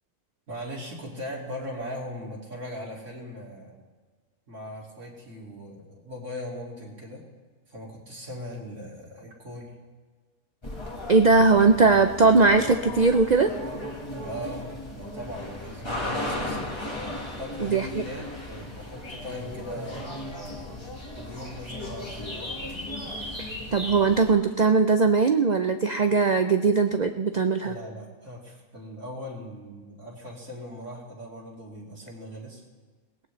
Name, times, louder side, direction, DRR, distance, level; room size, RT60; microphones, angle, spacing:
voice 1, 0.5-3.8 4.5-7.2 7.7-9.7 14.2-16.6 17.4-20.0 21.2-22.5 27.6-32.6, equal, 55° right, -4 dB, 2.7 m, -39 dB
sound 1, 10.6-24.3, left 1 dB, 20° left, 1.5 m, -36 dB
voice 2, 11.1-13.5 17.6-17.9 23.4-27.7, right 4 dB, 75° right, 7 dB, 0.4 m, -20 dB
22.5 x 18.0 x 3.2 m, 1.4 s
omnidirectional pair, 1.5 m